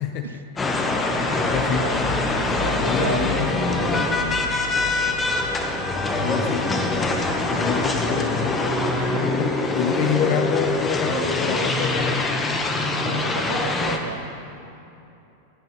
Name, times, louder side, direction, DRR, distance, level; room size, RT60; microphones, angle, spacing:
sound 1, 0.6-14.0, left 2 dB, 15° left, 0.8 m, -23 dB
voice 1, 0.9-1.9 2.9-3.6 6.2-8.6 9.4-12.3, left 9 dB, 40° left, 6 dB, 0.5 m, -28 dB
sound 2, 1.5-6.6, left 6 dB, 70° left, 1.4 m, -36 dB
voice 2, 2.6-4.4 4.7-5.3 9.0-9.5 9.9-10.4 11.1-11.9 12.9-14.2, right 7 dB, 65° right, 10 dB, 0.5 m, -34 dB
15.5 x 9.2 x 2.9 m, 2.9 s
figure-of-eight pair, 90°, 0 cm